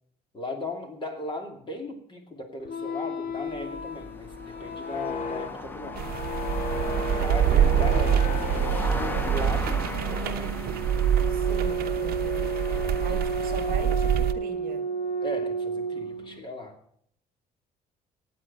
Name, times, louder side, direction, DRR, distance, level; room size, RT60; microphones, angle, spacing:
voice 1, 0.3-6.2 6.7-10.7 13.1-13.2 15.2-16.7, left 2 dB, 30° left, 4 dB, 2.7 m, -37 dB
sound 1, 2.6-16.4, right 1 dB, 55° left, 1.8 m, -32 dB
sound 2, 3.3-13.9, left 1 dB, 10° left, 1.0 m, -38 dB
sound 3, 5.9-14.3, right 10 dB, 65° right, 0.9 m, -26 dB
voice 2, 6.8-7.8 11.3-12.5 13.0-14.8, right 7 dB, 45° right, 8 dB, 1.4 m, -41 dB
16.0 x 9.0 x 5.5 m, 0.66 s
cardioid pair, 110°, 17 cm